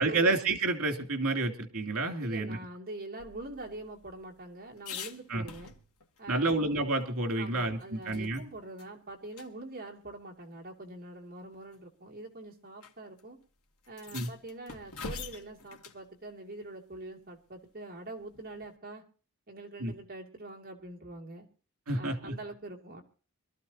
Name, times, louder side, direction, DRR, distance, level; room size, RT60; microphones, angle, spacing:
voice 1, 0.0-2.6 5.3-5.4 6.3-8.4 14.1-14.3 19.8-19.9 21.9-22.4, right 2 dB, 75° right, 3 dB, 2.8 m, -29 dB
voice 2, 2.2-5.7 6.2-6.6 7.4-13.4 13.9-19.0 19.5-21.5 22.0-23.0, right 2 dB, 40° right, 0 dB, 2.6 m, -44 dB
sound 1, 3.2-6.2 6.6-6.7 7.0-8.4 8.8-8.9 9.3-9.5 10.5-10.6 11.5-11.8 12.8-12.9 13.2-13.3 13.8-16.0 18.3-18.8, left 5 dB, 75° left, 1.5 m, -45 dB
24.5 x 13.0 x 2.9 m, 0.38 s
head